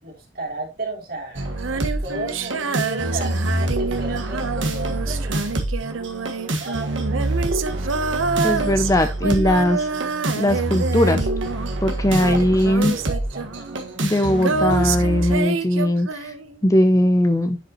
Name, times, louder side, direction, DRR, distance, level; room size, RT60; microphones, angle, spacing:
voice 1, 0.0-5.4 6.5-7.0 12.2-12.3 12.9-14.0 15.7-15.8, right 2 dB, 50° right, 3.1 m, -34 dB
sound 1, 1.3-15.4, right 1 dB, 75° right, 1.7 m, -26 dB
Female singing, 1.5-11.9 12.1-16.6, right 5 dB, 90° right, 0.8 m, -27 dB
voice 2, 8.4-9.9 10.4-11.3 11.8-13.0 14.0-16.3 16.6-17.6, left 1 dB, 15° left, 0.5 m, -19 dB
10.0 x 5.3 x 3.0 m
head